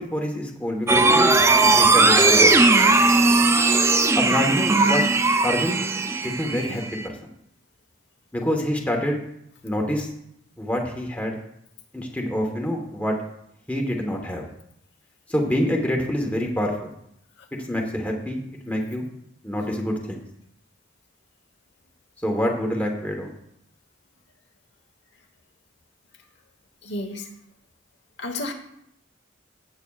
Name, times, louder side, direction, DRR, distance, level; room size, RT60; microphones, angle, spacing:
voice 1, 0.0-1.3 1.7-2.5 4.2-5.0 5.4-5.8 6.2-7.1 8.3-9.2 9.6-10.1 10.6-11.4 11.9-13.2 13.7-14.5 15.3-16.9 17.7-19.1 19.4-20.2 22.2-23.3, equal, 10° left, 0 dB, 1.2 m, -26 dB
sound 1, 0.9-7.1, right 3 dB, 15° right, 0.3 m, -18 dB
voice 2, 26.8-27.3 28.2-28.5, left 2 dB, 60° left, 4 dB, 1.1 m, -32 dB
16.0 x 7.7 x 2.4 m, 0.77 s
head